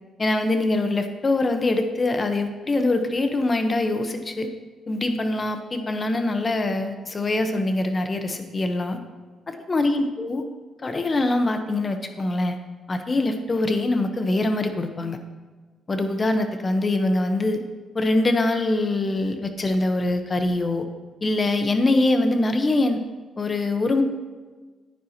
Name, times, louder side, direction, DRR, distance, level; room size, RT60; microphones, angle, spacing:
voice 1, 0.2-4.5 4.9-9.0 9.5-10.4 10.8-12.6 12.9-15.2 15.9-17.6 17.9-20.9 21.2-23.0 23.4-24.0, left 2 dB, 35° left, 7 dB, 1.0 m, -23 dB
10.0 x 9.4 x 2.9 m, 1.4 s
cardioid pair, 70°, 0 cm